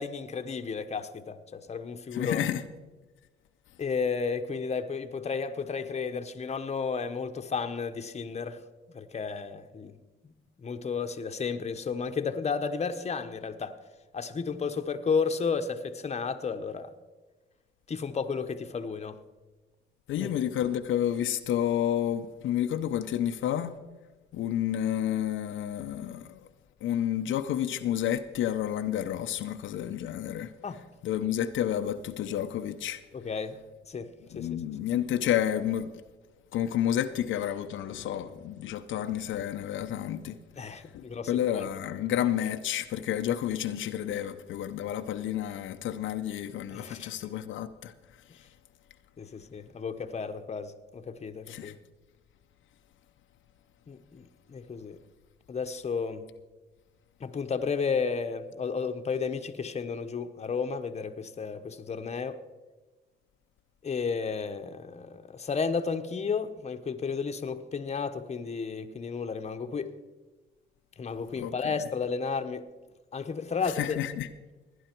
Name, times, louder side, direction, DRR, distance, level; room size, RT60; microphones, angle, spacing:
voice 1, 0.0-2.4 3.8-8.6 8.9-10.0 10.6-13.8 14.1-16.9 17.9-19.2 20.2-20.3 30.6-30.8 33.1-33.6 33.9-34.6 40.6-41.7 46.7-47.1 49.2-51.8 53.9-55.0 55.5-56.3 57.2-62.4 63.8-69.9 71.0-72.6 73.1-74.0, left 5 dB, 35° left, 1.0 m, -33 dB
voice 2, 2.1-2.6 20.1-23.8 24.3-26.4 26.8-30.5 31.0-33.0 34.3-35.9 36.5-47.9 51.5-51.7 71.4-71.7 73.6-74.3, left 11 dB, 80° left, 0.7 m, -30 dB
17.0 x 10.0 x 4.5 m
cardioid pair, 90°, 20 cm